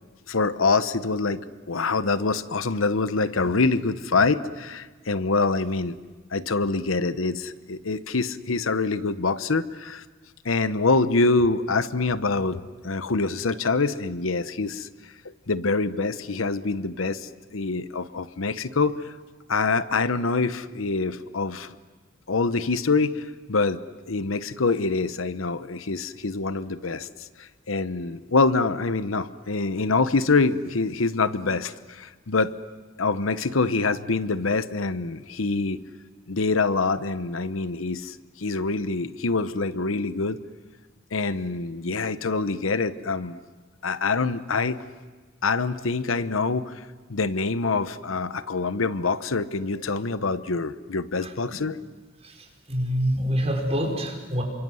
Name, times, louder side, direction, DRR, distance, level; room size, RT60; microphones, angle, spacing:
voice 1, 0.3-1.4 1.7-6.0 6.3-10.0 10.4-14.9 15.5-18.9 19.5-21.7 22.3-23.8 24.1-27.1 27.7-32.5 33.0-35.8 36.3-40.4 41.1-43.4 43.8-44.8 45.4-46.7 47.1-51.8, left 3 dB, 85° left, 13 dB, 1.0 m, -25 dB
voice 2, 52.2-54.4, equal, 30° right, 2 dB, 5.1 m, -26 dB
28.5 x 25.0 x 7.8 m, 1.3 s
head